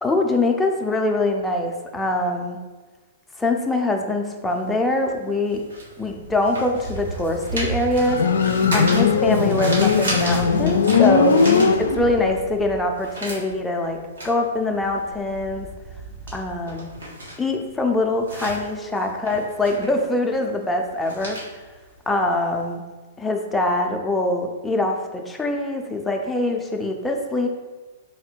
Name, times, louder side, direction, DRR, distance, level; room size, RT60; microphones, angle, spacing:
voice 1, 0.0-2.6 3.4-5.6 6.0-8.2 8.7-11.4 11.8-14.0 14.2-15.7 16.3-16.9 17.4-21.4 22.1-22.8 23.2-27.5, left 2 dB, 10° left, 2 dB, 0.5 m, -23 dB
sound 1, 4.5-12.3 12.6-22.7, right 1 dB, 90° right, 1.3 m, -34 dB
Thunder, 6.0-8.4 8.7-13.6 14.6-17.3, right 4 dB, 70° right, 0.6 m, -37 dB
Motorcycle, 8.0-12.4, left 5 dB, 85° left, 0.4 m, -19 dB
4.1 x 2.1 x 4.5 m, 1.3 s
hypercardioid pair, 125°, 0 cm